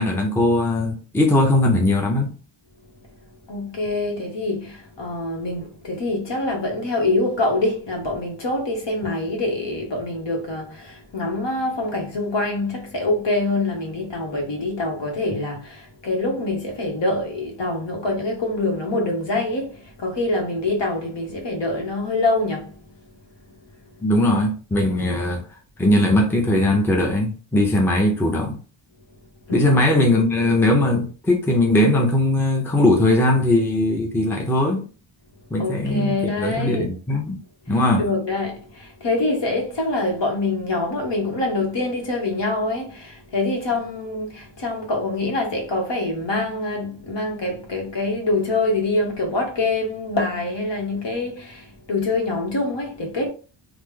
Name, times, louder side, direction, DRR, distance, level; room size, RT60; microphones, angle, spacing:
voice 1, 0.0-2.3 24.0-25.4 25.8-28.6 29.5-34.9 35.5-37.4 37.7-38.1, left 1 dB, 5° left, 0.5 m, -19 dB
voice 2, 3.5-22.8 24.9-25.2 29.5-29.8 35.6-36.9 38.0-53.3, left 2 dB, 60° left, 1.1 m, -25 dB
3.1 x 2.0 x 3.6 m
wide cardioid pair, 125°, 48 cm